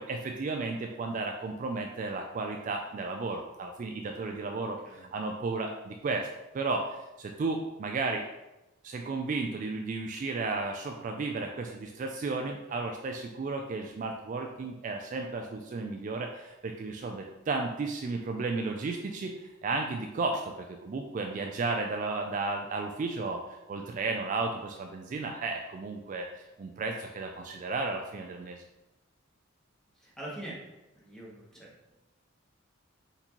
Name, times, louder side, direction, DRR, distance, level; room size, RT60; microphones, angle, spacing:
voice 1, 0.0-6.3 6.5-8.3 8.8-23.4 23.7-26.3 26.6-28.6, right 3 dB, 40° right, 2 dB, 0.3 m, -33 dB
voice 2, 4.6-5.1 30.0-30.6 30.9-31.9, right 1 dB, 5° left, -5 dB, 1.1 m, -44 dB
4.2 x 4.0 x 2.9 m, 1.0 s
head